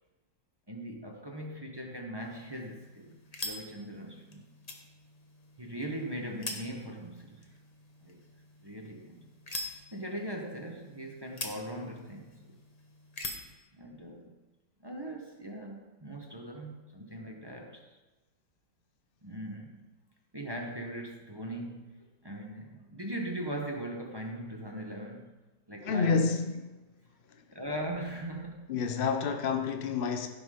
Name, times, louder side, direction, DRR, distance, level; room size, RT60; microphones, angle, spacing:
voice 1, 0.7-3.2 3.4-4.4 5.6-7.5 8.0-8.2 8.6-9.2 9.9-12.6 13.7-14.3 14.8-18.0 19.2-19.8 20.3-25.3 25.7-26.2 27.5-28.7, right 1 dB, 20° right, 0.8 m, -40 dB
sound 1, 2.2-13.6, left 2 dB, 25° left, 1.0 m, -45 dB
voice 2, 25.8-26.8 27.3-27.4 28.7-30.3, left 5 dB, 70° left, 0.5 m, -29 dB
16.0 x 5.9 x 4.9 m
omnidirectional pair, 1.9 m